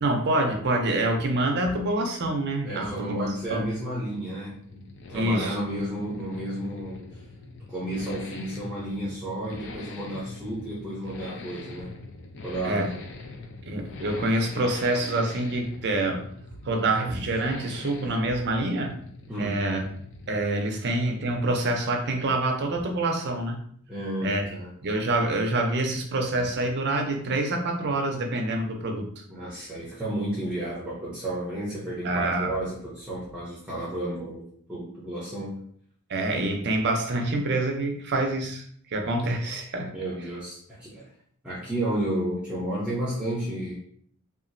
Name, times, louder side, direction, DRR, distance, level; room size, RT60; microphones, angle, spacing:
voice 1, 0.0-3.7 5.1-5.6 12.6-12.9 13.7-16.3 16.6-18.9 19.4-19.9 20.3-23.6 24.2-24.4 24.8-29.2 32.0-32.5 36.1-38.6 38.9-40.0, right 2 dB, 55° right, 3 dB, 0.5 m, -26 dB
Accelerating revving vroom, 2.5-20.6 20.8-20.9, left 3 dB, 60° left, 0.4 m, -43 dB
voice 2, 2.6-7.0 7.7-11.9 12.4-13.0 19.3-19.7 23.9-24.7 29.3-35.6 39.9-41.1 41.4-43.7, right 1 dB, 5° right, -8 dB, 0.7 m, -32 dB
2.8 x 2.4 x 2.6 m, 0.63 s
head